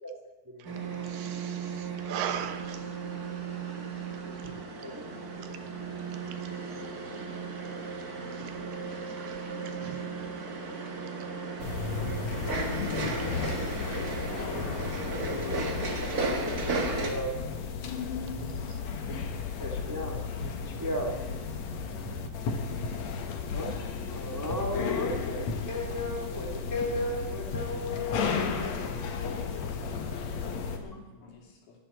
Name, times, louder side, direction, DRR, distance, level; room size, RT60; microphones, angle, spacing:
sound 1, 0.6-17.1, right 3 dB, 45° right, 1.2 m, -35 dB
voice 1, 0.9-2.9 8.3-8.5 9.1-9.4 9.8-10.0 13.0-13.7 18.7-18.8, right 9 dB, 85° right, 8 dB, 3.0 m, -39 dB
sound 2, 11.6-30.8, left 5 dB, 60° left, 2.1 m, -34 dB
voice 2, 14.4-15.9 16.3-16.7 17.0-17.4 19.6-20.2 20.6-21.1 23.5-23.7 24.1-29.4, left 1 dB, 20° right, 1 dB, 0.5 m, -36 dB
voice 3, 30.5-31.7, left 4 dB, 75° left, 0 dB, 4.6 m, -52 dB
12.0 x 11.0 x 8.0 m, 1.1 s
omnidirectional pair, 4.4 m